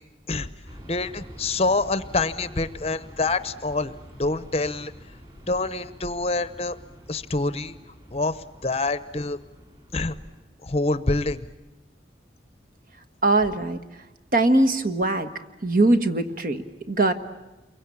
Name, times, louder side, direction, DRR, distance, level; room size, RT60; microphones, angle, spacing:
sound 1, 0.7-10.4, equal, 30° right, 5.5 m, -47 dB
voice 1, 0.9-3.9 4.2-4.9 5.5-6.8 7.1-7.7 8.1-9.4 9.9-10.2 10.6-11.4, left 3 dB, 35° left, 14 dB, 0.9 m, -26 dB
voice 2, 13.2-14.0 14.3-15.3 15.6-17.1, right 2 dB, 45° right, 8 dB, 1.5 m, -21 dB
29.0 x 23.5 x 8.6 m, 1.0 s
head